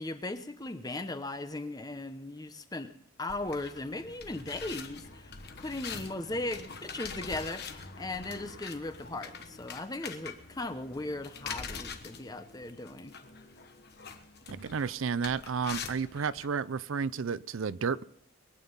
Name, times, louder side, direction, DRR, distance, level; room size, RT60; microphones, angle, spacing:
voice 1, 0.0-2.9 3.2-13.1, left 2 dB, 20° left, 0.9 m, -38 dB
sound 1, 3.3-16.5, left 5 dB, 50° left, 1.3 m, -44 dB
voice 2, 14.5-18.0, right 5 dB, 70° right, 0.5 m, -32 dB
23.0 x 9.3 x 5.4 m
head